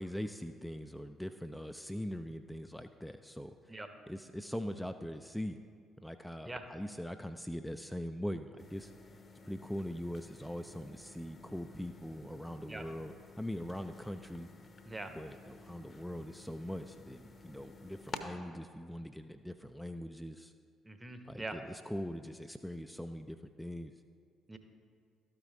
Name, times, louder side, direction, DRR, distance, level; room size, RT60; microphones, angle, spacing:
voice 1, 0.0-3.5 4.1-5.6 6.0-8.9 9.4-14.5 15.1-20.5 21.3-23.9, equal, 5° left, 7 dB, 0.3 m, -42 dB
sound 1, 8.6-18.2, left 3 dB, 35° left, 0.8 m, -52 dB
voice 2, 20.8-21.6 24.5-24.6, right 2 dB, 20° right, 7 dB, 0.8 m, -42 dB
13.0 x 5.1 x 3.7 m, 2.1 s
figure-of-eight pair, 45°, 0 cm